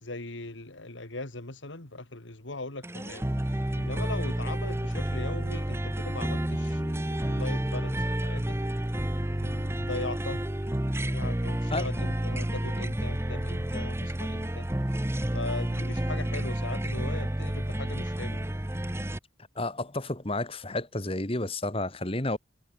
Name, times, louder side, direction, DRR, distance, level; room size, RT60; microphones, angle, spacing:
voice 1, 0.0-8.6 9.3-10.4 11.0-14.7 15.3-18.5, left 2 dB, 85° left, 2.7 m, -39 dB
sound 1, 2.8-19.2, right 1 dB, 15° right, 1.0 m, -30 dB
voice 2, 19.6-22.4, left 2 dB, 30° left, 2.5 m, -31 dB
head